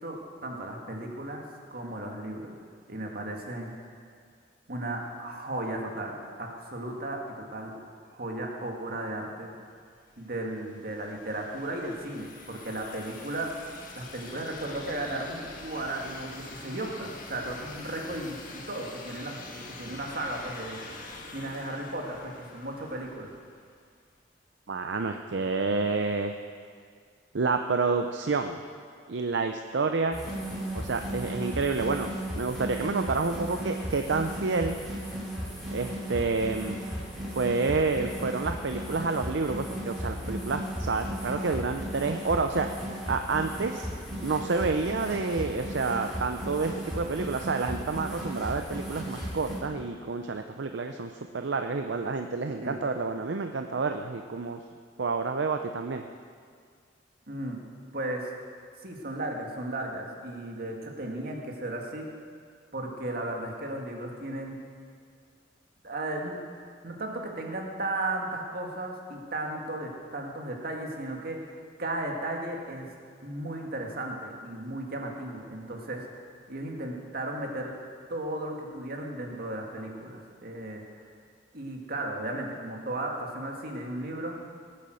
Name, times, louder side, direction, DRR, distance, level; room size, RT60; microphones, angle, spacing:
voice 1, 0.0-1.4 1.7-2.5 2.9-3.9 4.7-7.7 8.1-9.5 10.2-13.5 14.0-20.9 21.3-23.3 52.6-52.8 57.3-57.6 57.9-58.3 58.8-62.0 62.7-64.6 65.8-66.4 66.8-72.9 73.2-76.0 76.5-77.7 78.1-80.8 81.5-84.4, right 1 dB, 55° right, 1 dB, 2.0 m, -35 dB
sound 1, 10.0-23.8, left 2 dB, 50° left, 1.6 m, -45 dB
voice 2, 24.7-26.3 27.3-28.6 29.1-30.2 30.7-32.1 32.4-34.8 35.7-36.8 37.3-43.9 44.2-54.6 55.0-56.0, right 4 dB, 70° right, 6 dB, 0.6 m, -29 dB
sound 2, 30.1-49.6, equal, ahead, 3.5 m, -36 dB
19.0 x 8.6 x 6.4 m, 2.1 s
head